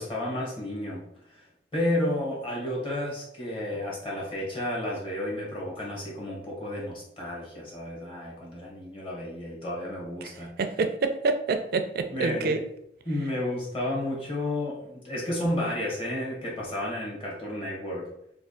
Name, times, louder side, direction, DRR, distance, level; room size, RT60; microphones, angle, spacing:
voice 1, 0.0-1.4 1.7-10.6 12.1-12.6 13.0-18.1, left 1 dB, 30° left, -4 dB, 1.4 m, -32 dB
voice 2, 10.6-12.6, right 3 dB, 60° right, 7 dB, 0.4 m, -27 dB
3.4 x 2.4 x 3.7 m, 0.74 s
head